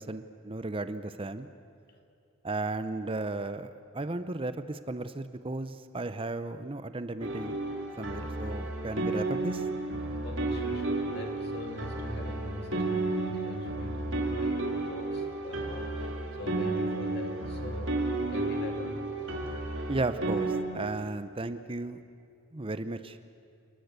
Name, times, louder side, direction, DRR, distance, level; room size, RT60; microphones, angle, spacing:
voice 1, 0.0-1.5 2.4-7.6 8.0-9.7 19.9-22.0 22.5-23.2, right 2 dB, 25° right, 11 dB, 0.7 m, -35 dB
sound 1, 7.2-20.6, right 2 dB, 60° right, 3.5 m, -32 dB
voice 2, 10.2-18.9, left 1 dB, 50° left, 4 dB, 2.9 m, -42 dB
29.0 x 20.0 x 8.2 m, 2.6 s
head